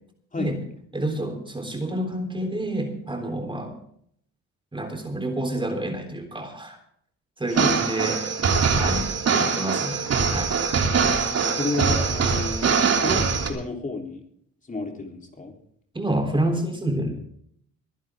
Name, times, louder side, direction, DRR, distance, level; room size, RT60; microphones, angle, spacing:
voice 1, 0.9-3.8 4.7-6.8 7.4-8.2 8.7-9.1 9.4-10.0 10.3-10.5 15.9-17.1, right 1 dB, 15° right, 4 dB, 3.5 m, -28 dB
voice 2, 7.5-7.8 8.7-8.8 10.9-12.8 13.0-14.2 14.7-15.6, left 3 dB, 25° left, 2 dB, 3.5 m, -31 dB
sound 1, 7.5-13.5, right 5 dB, 55° right, 3.1 m, -23 dB
23.5 x 11.0 x 3.6 m, 0.65 s
cardioid pair, 90°, 30 cm